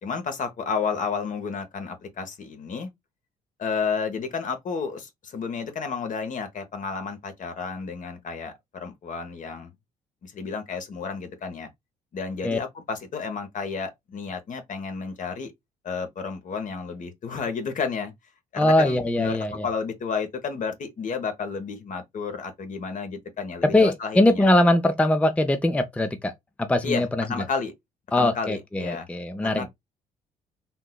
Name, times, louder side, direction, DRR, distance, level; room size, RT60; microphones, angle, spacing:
voice 1, 0.0-2.9 3.6-9.7 10.2-11.7 12.1-15.5 15.8-18.1 18.5-19.4 19.6-24.5 26.8-27.7 28.2-29.1 29.4-29.7, left 5 dB, 45° left, 0.9 m, -31 dB
voice 2, 18.6-19.7 23.6-26.3 26.6-27.2 28.1-29.7, left 1 dB, 5° left, 0.5 m, -21 dB
3.6 x 2.8 x 2.3 m
hypercardioid pair, 50°, 18 cm